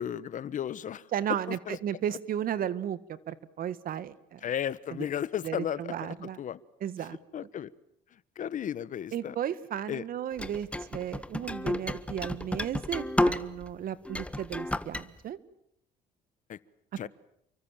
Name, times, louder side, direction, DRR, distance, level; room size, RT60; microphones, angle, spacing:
voice 1, 0.0-1.1 1.5-1.8 4.4-6.6 7.3-7.7 8.4-9.3 9.9-10.1 16.5-16.6 17.0-17.1, left 9 dB, 50° left, 18 dB, 1.2 m, -34 dB
voice 2, 1.1-4.4 5.4-6.4 6.8-7.2 9.1-15.4, right 10 dB, 60° right, 16 dB, 1.8 m, -34 dB
sound 1, 10.4-13.7 14.1-15.0, left 1 dB, 5° left, 1.5 m, -31 dB
30.0 x 23.5 x 7.5 m, 0.75 s
cardioid pair, 110°, 17 cm